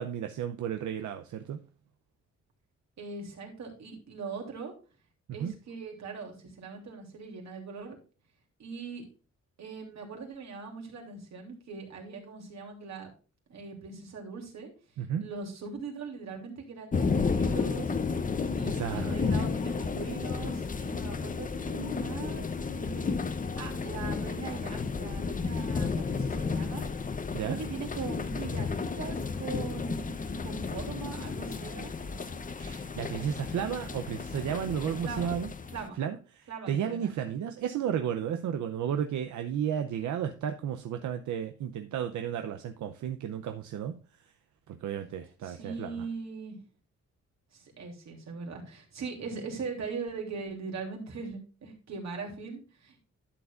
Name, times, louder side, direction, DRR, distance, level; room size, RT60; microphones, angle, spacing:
voice 1, 0.0-1.6 5.4-5.5 15.0-15.3 18.5-19.2 27.3-27.6 32.6-35.5 36.0-44.0 44.7-46.0, right 9 dB, 90° right, 7 dB, 0.7 m, -33 dB
voice 2, 3.0-4.7 5.3-8.0 8.6-9.0 9.6-13.1 13.5-14.7 15.2-18.0 18.5-22.5 22.7-23.2 23.6-26.9 27.4-31.9 35.0-35.4 35.7-36.0 36.5-37.1 45.4-46.6 47.5-53.0, right 4 dB, 65° right, 1 dB, 3.1 m, -40 dB
sound 1, 16.9-35.9, left 4 dB, 30° left, 0.7 m, -32 dB
12.0 x 7.2 x 2.5 m, 0.35 s
cardioid pair, 115°, 29 cm